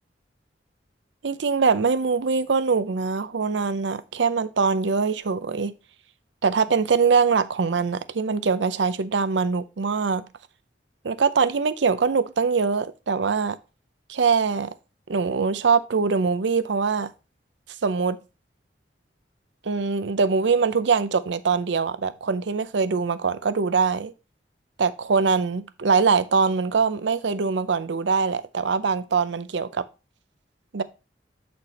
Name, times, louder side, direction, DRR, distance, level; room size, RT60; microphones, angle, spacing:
voice 1, 1.2-5.7 6.4-10.3 11.0-13.6 14.1-14.7 15.1-17.1 17.8-18.2 19.6-24.1 24.8-29.8 30.7-30.8, right 5 dB, 75° right, 0.6 m, -23 dB
8.1 x 4.4 x 4.2 m
head